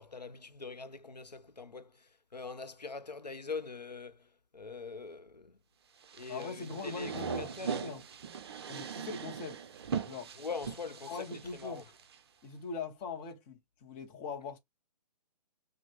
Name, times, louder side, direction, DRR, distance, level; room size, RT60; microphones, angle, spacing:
voice 1, 0.0-5.6 6.1-7.8 10.4-11.3 11.5-11.8, left 4 dB, 85° left, 0.5 m, -43 dB
sound 1, 6.0-12.2, right 6 dB, 40° right, 0.5 m, -40 dB
voice 2, 6.3-8.0 8.7-9.6 10.1-10.3 11.1-11.8 12.4-14.6, left 4 dB, 20° left, 0.7 m, -41 dB
5.0 x 2.1 x 3.4 m
figure-of-eight pair, 130°, 21 cm